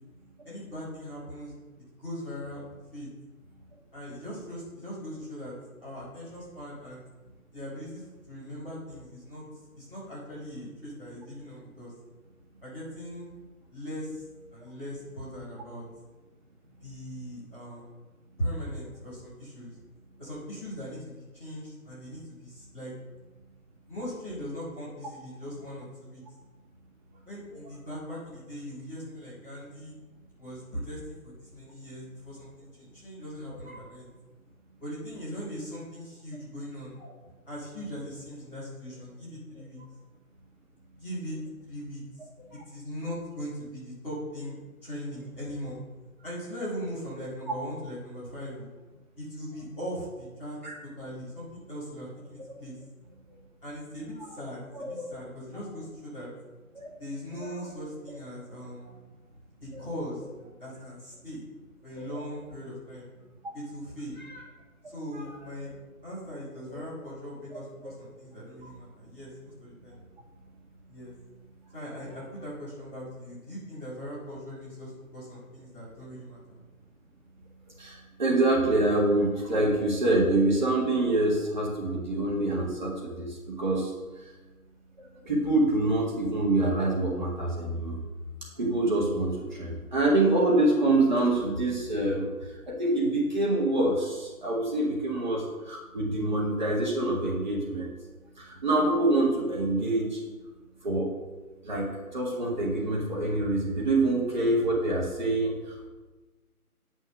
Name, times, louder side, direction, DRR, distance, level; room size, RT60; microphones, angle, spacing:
voice 1, 0.4-1.6 2.0-2.6 2.9-3.1 3.9-5.5 5.8-7.0 7.5-9.4 9.8-11.9 12.6-13.3 13.7-14.2 14.5-15.8 16.7-17.9 18.4-19.7 20.2-22.9 23.9-26.2 27.2-29.9 30.4-34.1 34.8-36.9 37.5-39.8 40.9-41.4 41.6-42.0 42.7-45.8 46.2-48.7 49.2-50.6 51.0-52.8 53.6-56.3 57.0-58.9 59.6-60.2 60.6-61.4 61.8-63.1 63.5-64.1 64.9-65.7 66.0-70.0 70.9-71.1 71.7-76.6, equal, 5° left, -15 dB, 1.9 m, -39 dB
voice 2, 77.8-83.9 85.2-88.0 88.6-92.3 92.7-97.9 98.4-100.2 100.8-101.1 101.6-105.9, right 2 dB, 30° right, -3 dB, 1.8 m, -26 dB
9.6 x 6.3 x 6.2 m, 1.2 s
figure-of-eight pair, 165°, 45 cm